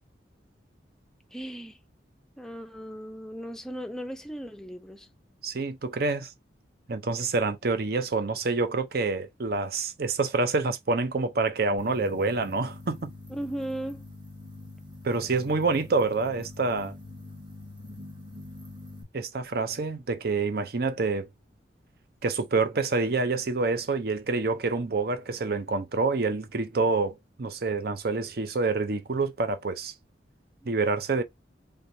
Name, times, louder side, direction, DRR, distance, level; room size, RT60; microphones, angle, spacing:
voice 1, 1.3-1.8 2.4-5.1 13.3-14.0 30.6-30.7, right 1 dB, 5° left, 0.5 m, -37 dB
voice 2, 5.4-6.3 6.9-13.1 15.0-16.9 19.1-21.3 22.2-29.9 30.7-31.2, right 3 dB, 55° right, 0.6 m, -27 dB
sound 1, 11.8-19.0, left 2 dB, 25° right, 1.2 m, -44 dB
3.4 x 3.3 x 2.6 m
head